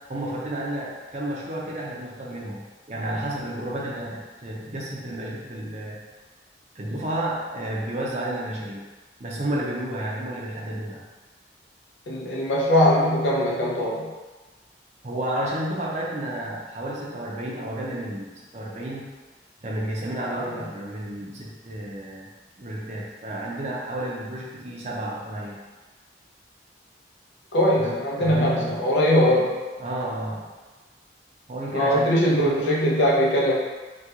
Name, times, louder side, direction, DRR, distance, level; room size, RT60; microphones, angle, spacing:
voice 1, 0.1-2.6 2.9-6.0 6.7-8.8 9.2-11.0 15.0-19.1 19.6-22.3 22.6-25.6 27.8-28.8 29.8-30.5 31.5-32.7, right 1 dB, 40° right, -4 dB, 0.6 m, -31 dB
voice 2, 12.1-14.1 20.4-20.5 27.5-29.6 31.7-33.5, equal, 80° left, -4 dB, 0.7 m, -21 dB
3.0 x 2.3 x 3.6 m, 1.3 s
head